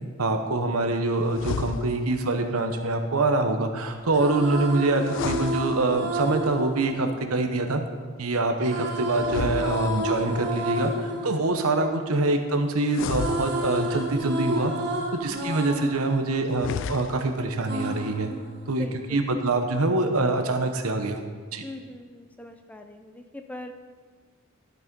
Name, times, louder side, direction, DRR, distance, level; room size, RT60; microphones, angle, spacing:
voice 1, 0.2-7.8 8.2-14.7 15.2-18.3 18.7-18.9 19.1-21.2 21.5-21.7, right 2 dB, 85° right, 6 dB, 1.0 m, -25 dB
sound 1, 1.3-2.3 5.0-6.3 9.2-10.4 12.9-14.1 16.5-17.4, left 6 dB, 60° left, 0.3 m, -33 dB
sound 2, 3.9-8.0 8.6-12.7 12.9-17.2 17.7-19.1, right 1 dB, 50° right, 1.3 m, -32 dB
voice 2, 18.8-19.4 21.6-23.7, left 1 dB, 5° left, 5 dB, 0.5 m, -41 dB
12.5 x 6.3 x 5.3 m, 1.5 s
head